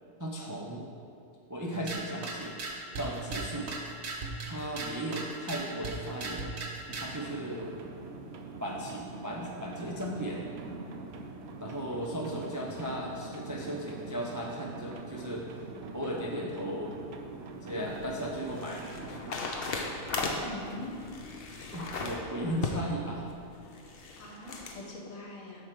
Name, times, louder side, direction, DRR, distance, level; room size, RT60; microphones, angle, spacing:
voice 1, 0.2-0.9 1.5-2.6 3.0-3.7 4.5-6.5 7.0-7.8 8.6-10.4 11.6-15.5 15.9-16.9 17.6-18.9 21.7-23.3, equal, 25° right, -2 dB, 0.4 m, -36 dB
sound 1, 1.7-7.2, right 3 dB, 55° right, 1.0 m, -38 dB
sound 2, 6.9-19.3, right 3 dB, 80° right, 1.2 m, -43 dB
sound 3, 17.4-24.8, left 3 dB, 50° left, 0.9 m, -38 dB
voice 2, 20.4-21.0 24.2-25.6, left 2 dB, 70° left, -1 dB, 1.6 m, -42 dB
7.6 x 4.5 x 6.7 m, 2.5 s
omnidirectional pair, 1.5 m